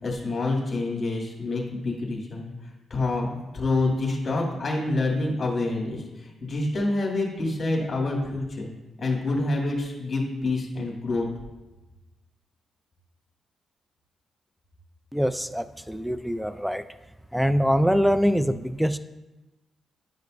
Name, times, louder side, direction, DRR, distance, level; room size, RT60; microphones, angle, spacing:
voice 1, 0.0-2.5 2.9-3.3 3.5-8.7 9.0-11.2, left 2 dB, 40° left, -2 dB, 2.4 m, -27 dB
voice 2, 15.1-16.8 17.3-19.0, equal, ahead, 12 dB, 0.3 m, -24 dB
11.5 x 5.3 x 2.6 m, 1.1 s
cardioid pair, 70°, 0 cm